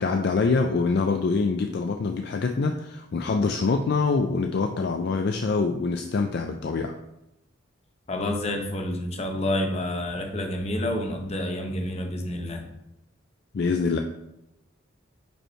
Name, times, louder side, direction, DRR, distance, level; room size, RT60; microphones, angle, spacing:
voice 1, 0.0-7.0 13.5-14.0, left 4 dB, 50° left, 4 dB, 0.3 m, -25 dB
voice 2, 8.1-12.7, left 1 dB, 30° left, 4 dB, 0.7 m, -29 dB
5.3 x 4.6 x 4.3 m, 0.87 s
head